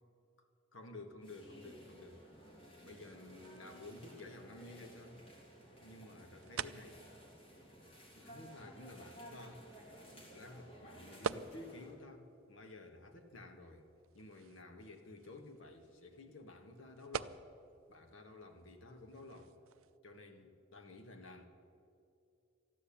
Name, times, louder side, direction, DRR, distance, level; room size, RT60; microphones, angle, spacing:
voice 1, 0.7-2.2 2.8-5.3 5.8-7.0 8.2-9.7 10.1-13.9 14.1-17.4 17.9-19.6 20.0-21.5, left 2 dB, 75° left, 3 dB, 1.5 m, -53 dB
sound 1, 1.2-11.9, right 1 dB, 30° left, 2.8 m, -56 dB
sound 2, 2.3-20.0, right 7 dB, 85° right, 0.4 m, -50 dB
13.5 x 10.0 x 8.5 m, 2.5 s
head